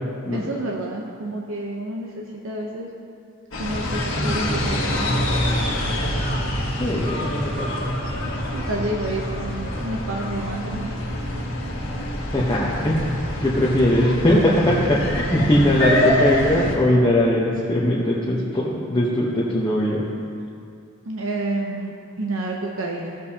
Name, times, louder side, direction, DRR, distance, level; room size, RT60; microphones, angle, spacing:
voice 1, 0.3-2.9 3.6-5.3 8.5-10.9 21.1-23.2, right 2 dB, 80° right, -1 dB, 0.8 m, -29 dB
sound 1, 3.5-16.7, left 1 dB, 80° left, 1.5 m, -26 dB
voice 2, 6.8-7.9 12.3-13.1 13.4-20.0, left 1 dB, 20° left, -6 dB, 1.0 m, -20 dB
15.0 x 7.1 x 2.8 m, 2.4 s
head